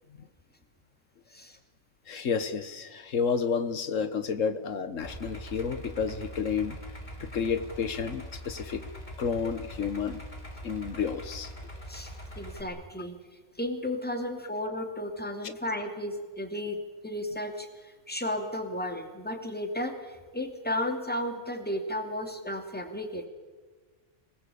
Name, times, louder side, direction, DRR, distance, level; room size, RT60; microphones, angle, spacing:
voice 1, 2.1-6.8 7.2-8.8 9.2-10.2 10.6-11.5 14.2-14.3, left 6 dB, 85° left, 11 dB, 1.6 m, -30 dB
Idling, 5.0-12.6, equal, 35° left, 2.8 m, -42 dB
voice 2, 11.9-13.2 13.6-23.3, left 1 dB, 5° left, 4 dB, 2.8 m, -34 dB
26.0 x 19.0 x 8.6 m, 1.4 s
omnidirectional pair, 1.3 m